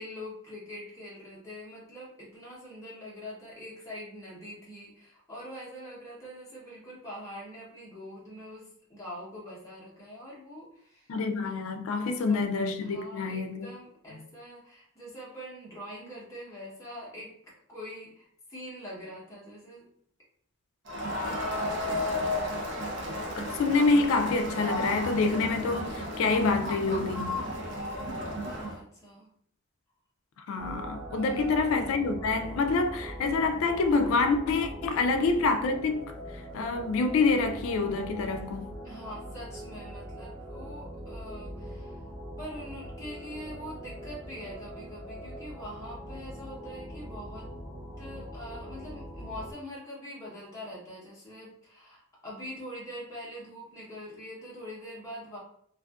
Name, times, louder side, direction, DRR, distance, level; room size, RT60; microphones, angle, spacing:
voice 1, 0.0-11.1 12.0-12.4 12.8-17.3 17.7-19.8 21.2-22.4 27.2-29.3 31.1-31.5 38.8-42.0 42.4-47.5 48.0-55.4, equal, 15° left, 0.8 m, -44 dB
voice 2, 11.1-13.7 23.4-27.4 30.5-36.1 36.5-38.7, left 3 dB, 75° left, 0.3 m, -27 dB
Crowd, 20.9-28.8, left 1 dB, 55° right, 0.5 m, -33 dB
sound 1, 30.6-49.5, equal, 30° right, 0.9 m, -42 dB
2.5 x 2.4 x 2.3 m
head